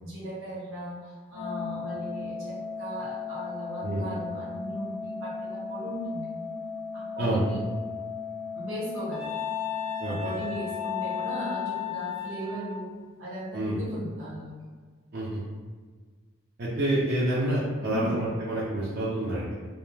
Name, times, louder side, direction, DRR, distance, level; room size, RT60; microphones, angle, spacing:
voice 1, 0.0-6.3 6.9-7.7 8.5-9.4 10.0-12.9 13.2-14.5 17.8-18.2, equal, 65° right, -8 dB, 1.1 m, -37 dB
Organ, 1.3-12.3, left 5 dB, 40° left, 0.6 m, -37 dB
Wind instrument woodwind instrument, 9.1-12.8, left 9 dB, ahead, 0.6 m, -34 dB
voice 2, 16.6-19.5, right 1 dB, 45° right, -8 dB, 0.5 m, -28 dB
2.2 x 2.2 x 3.1 m, 1.5 s
head